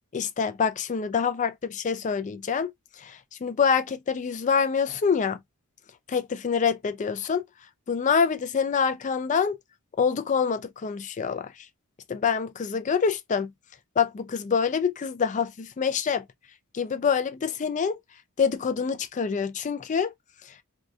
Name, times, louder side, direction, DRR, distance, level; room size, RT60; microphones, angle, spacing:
voice 1, 0.1-2.7 3.0-5.4 6.1-7.4 7.9-9.6 10.0-11.5 12.1-13.5 14.0-16.2 16.7-18.0 18.4-20.1, left 6 dB, 35° left, 0.4 m, -26 dB
2.7 x 2.1 x 2.4 m
head